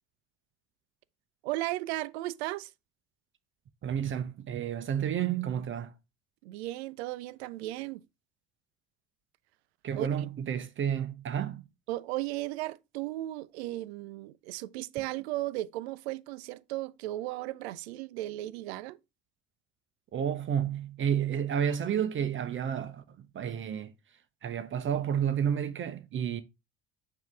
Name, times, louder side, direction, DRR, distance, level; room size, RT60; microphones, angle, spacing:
voice 1, 1.4-2.7 6.4-8.0 9.9-10.1 11.9-19.0, right 17 dB, 80° right, 0.5 m, -35 dB
voice 2, 3.8-5.9 9.8-11.6 20.1-23.9 24.4-26.4, right 8 dB, 40° right, 0.7 m, -31 dB
7.2 x 2.8 x 4.6 m
hypercardioid pair, 70°, 32 cm